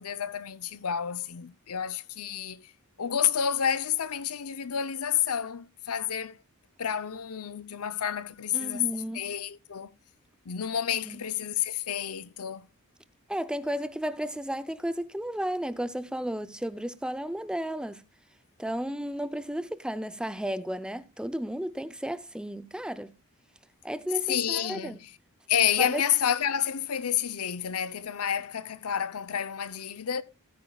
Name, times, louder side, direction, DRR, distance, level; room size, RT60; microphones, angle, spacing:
voice 1, 0.0-2.6 3.0-6.4 6.8-8.9 9.1-9.9 10.5-12.7 24.3-25.0 25.5-30.2, left 9 dB, 75° left, 0.7 m, -29 dB
voice 2, 8.5-9.3 11.1-11.2 13.3-18.0 18.6-23.1 23.8-25.0 25.8-26.0, equal, 5° right, 0.5 m, -33 dB
16.5 x 9.4 x 2.3 m
head